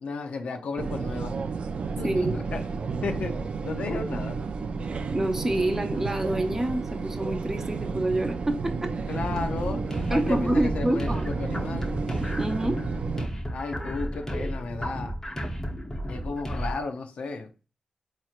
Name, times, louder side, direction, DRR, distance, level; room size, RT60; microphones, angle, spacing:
voice 1, 0.0-1.4 2.0-2.6 3.0-4.4 9.1-11.9 13.5-15.2 16.1-17.5, left 4 dB, 85° left, 0.5 m, -34 dB
sound 1, 0.8-13.3, right 4 dB, 65° right, 0.4 m, -31 dB
voice 2, 5.1-8.9 10.1-11.3 12.4-12.8, right 1 dB, 20° right, 0.6 m, -27 dB
sound 2, 9.1-16.8, equal, 25° left, 0.9 m, -33 dB
4.3 x 3.0 x 2.4 m
wide cardioid pair, 95°, 2 cm